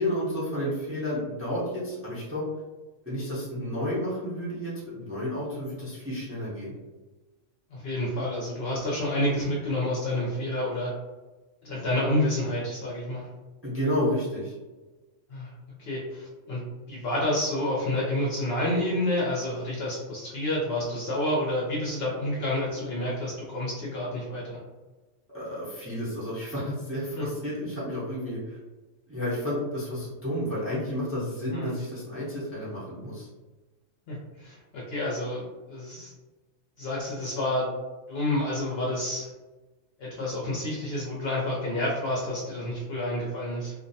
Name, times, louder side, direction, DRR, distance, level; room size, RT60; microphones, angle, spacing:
voice 1, 0.0-2.4 3.1-6.7 13.6-14.5 25.3-28.6 29.1-33.3, equal, 15° right, -9 dB, 0.5 m, -31 dB
voice 2, 7.7-10.9 11.6-13.3 15.3-15.5 15.8-16.6 16.9-24.4 27.2-27.3 31.5-31.7 34.1-36.1 36.8-37.7 38.1-39.3 40.0-43.7, left 1 dB, 60° left, -5 dB, 0.7 m, -29 dB
2.5 x 2.1 x 2.6 m, 1.2 s
omnidirectional pair, 1.4 m